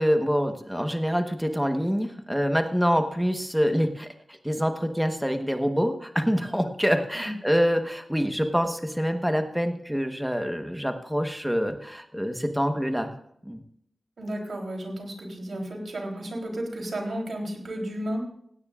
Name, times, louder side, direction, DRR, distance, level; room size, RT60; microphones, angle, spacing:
voice 1, 0.0-13.1 13.4-13.6, equal, ahead, 6 dB, 1.1 m, -26 dB
voice 2, 14.2-18.2, right 1 dB, 65° right, 1 dB, 3.4 m, -33 dB
17.5 x 16.5 x 2.5 m, 0.70 s
wide cardioid pair, 130°, 0 cm